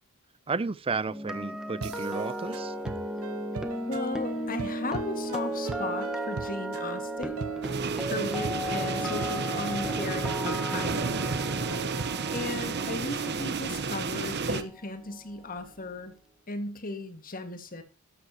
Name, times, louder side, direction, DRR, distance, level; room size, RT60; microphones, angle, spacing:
voice 1, 0.5-2.7, right 4 dB, 25° right, 0.5 m, -32 dB
sound 1, 1.1-15.1 15.4-15.7, right 1 dB, 5° right, 1.2 m, -35 dB
sound 2, 1.8-12.5, right 4 dB, 75° right, 0.8 m, -40 dB
voice 2, 3.9-7.4 8.0-11.2 12.3-16.1 16.5-17.8, left 2 dB, 40° left, 1.9 m, -36 dB
sound 3, 7.6-14.6, right 4 dB, 50° right, 1.1 m, -31 dB
12.5 x 12.5 x 2.9 m
head